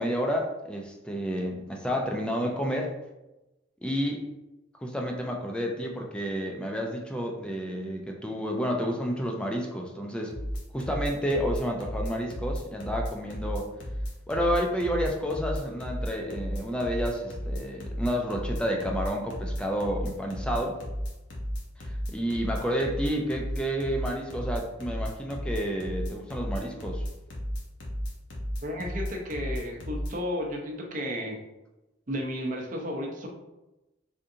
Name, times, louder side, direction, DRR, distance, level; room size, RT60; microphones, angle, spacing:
voice 1, 0.0-2.9 3.8-4.2 4.8-10.4 10.7-13.7 14.3-20.8 21.8-27.0, equal, 5° left, 1 dB, 0.4 m, -30 dB
sound 1, 10.3-30.1, equal, 80° left, 0.9 m, -33 dB
voice 2, 28.6-31.4 32.1-33.3, equal, 45° right, 0 dB, 0.7 m, -33 dB
3.6 x 2.6 x 2.6 m, 0.98 s
head